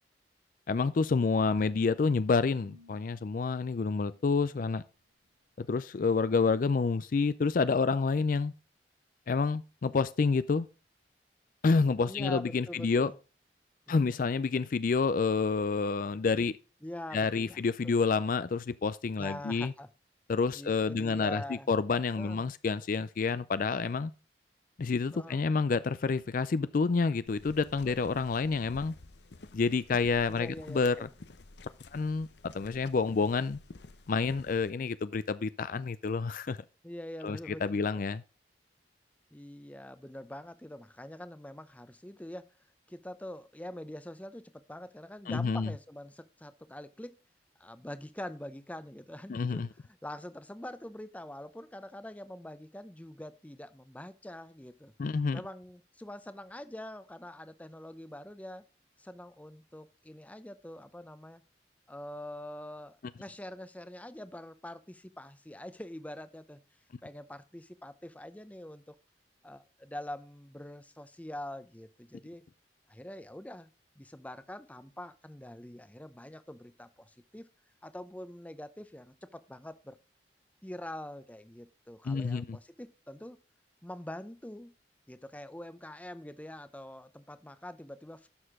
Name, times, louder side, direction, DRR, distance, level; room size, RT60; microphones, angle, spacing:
voice 1, 0.7-4.8 5.6-8.5 9.3-10.7 11.6-13.1 13.9-16.6 17.1-19.7 20.3-24.1 24.8-28.9 29.5-31.1 31.9-32.3 32.5-33.6 34.1-36.6 37.2-38.2 45.3-45.7 49.3-49.7 55.0-55.4 82.1-82.6, left 4 dB, 50° left, 0.4 m, -28 dB
sound 1, 1.6-4.9, left 1 dB, 90° right, 5.4 m, -60 dB
voice 2, 12.1-13.2 13.9-14.0 16.8-18.0 19.2-19.9 20.5-21.7 22.2-22.4 25.1-25.4 27.8-28.0 30.3-31.1 36.8-37.9 39.3-42.4 42.9-47.2 47.6-54.9 55.3-58.6 59.0-61.4 61.9-66.6 67.0-68.9 69.4-72.4 72.9-73.7 74.0-77.5 77.8-80.0 80.6-83.4 83.8-84.7 85.1-88.3, left 1 dB, 10° left, 0.6 m, -44 dB
sound 2, 27.3-34.7, left 2 dB, 75° left, 0.8 m, -51 dB
11.0 x 6.5 x 3.6 m
head